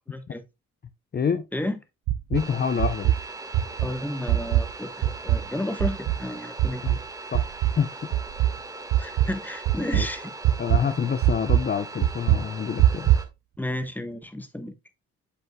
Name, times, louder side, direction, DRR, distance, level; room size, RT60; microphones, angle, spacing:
voice 1, 0.1-0.4 1.5-1.8 3.8-6.8 9.0-10.3 13.6-14.7, left 1 dB, 5° left, 1.3 m, -32 dB
voice 2, 1.1-1.5 2.3-3.1 6.8-7.0 7.3-7.5 7.8-8.0 9.9-10.1 10.6-13.1, left 7 dB, 35° left, 0.7 m, -27 dB
sound 1, 2.1-2.4 2.8-3.2 3.5-3.9 4.3-4.7 5.0-5.5 5.8-6.2 6.6-7.0 7.3-7.8 8.1-8.5 8.9-9.3 9.6-10.1 10.4-10.8 11.2-11.6 12.0-12.4 12.8-13.2, right 13 dB, 85° right, 0.7 m, -21 dB
sound 2, 2.3-13.2, right 3 dB, 10° right, 1.9 m, -40 dB
8.4 x 7.5 x 2.3 m
cardioid pair, 90°, 30 cm